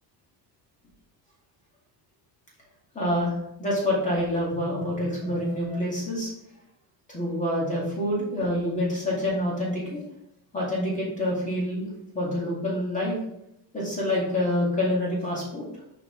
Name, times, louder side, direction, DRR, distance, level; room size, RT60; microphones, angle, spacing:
voice 1, 2.9-3.3 3.6-6.3 7.1-10.0 10.5-13.2 13.7-15.6, left 1 dB, 20° left, -4 dB, 2.1 m, -27 dB
5.9 x 5.1 x 3.9 m, 0.79 s
cardioid pair, 180°, 41 cm